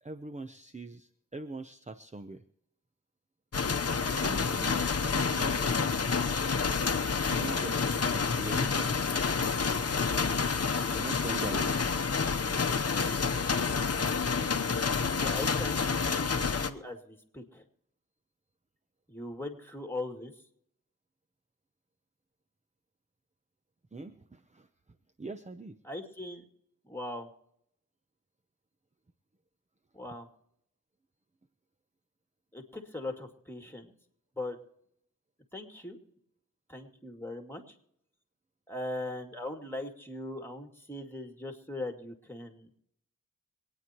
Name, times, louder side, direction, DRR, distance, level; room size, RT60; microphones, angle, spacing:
voice 1, 0.0-2.4 4.2-5.9 7.3-9.6 10.9-11.7 23.9-24.7 25.2-25.8, right 2 dB, 20° right, 9 dB, 0.7 m, -42 dB
sound 1, 3.5-16.7, left 5 dB, 45° left, 0.9 m, -29 dB
voice 2, 15.2-17.6 19.1-20.3 25.8-26.5 26.8-27.3 29.9-30.3 32.5-33.9 34.3-34.6 35.5-36.0 36.7-37.6 38.7-42.8, left 1 dB, 5° left, 4 dB, 2.4 m, -40 dB
25.5 x 9.6 x 3.0 m, 0.75 s
cardioid pair, 45°, 33 cm